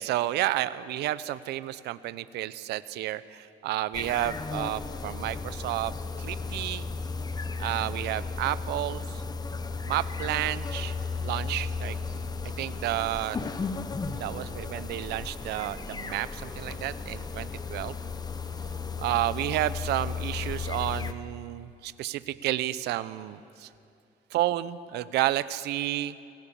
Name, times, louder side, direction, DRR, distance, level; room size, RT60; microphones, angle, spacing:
voice 1, 0.0-6.9 7.6-9.2 9.8-10.9 11.2-11.9 12.6-13.4 14.2-18.0 19.0-23.7 24.3-26.2, right 14 dB, 80° right, 16 dB, 0.8 m, -31 dB
sound 1, 3.9-21.1, left 4 dB, 25° left, 1.0 m, -35 dB
26.5 x 17.5 x 7.1 m, 2.5 s
cardioid pair, 110°, 17 cm